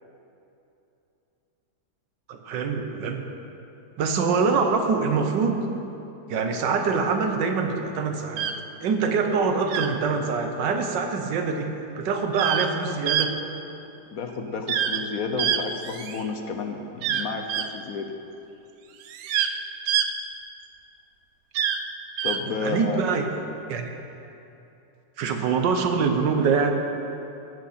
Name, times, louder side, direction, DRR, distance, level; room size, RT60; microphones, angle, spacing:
voice 1, 2.3-3.3 4.0-5.6 6.3-8.5 8.8-11.7 12.0-13.3 22.6-23.3 23.7-24.0 25.2-26.7, right 5 dB, 85° right, 5 dB, 1.6 m, -24 dB
sound 1, 8.4-8.5 9.7-9.9 12.3-12.7 13.1-13.3 14.7-15.0 15.4-16.3 17.0-17.7 19.0-19.5 19.9-20.1 21.5-21.8 22.2-22.4, right 9 dB, 70° right, 1.0 m, -25 dB
voice 2, 14.1-18.1 22.2-23.0, left 4 dB, 60° left, 5 dB, 1.2 m, -31 dB
17.0 x 6.5 x 5.7 m, 2.9 s
omnidirectional pair, 1.9 m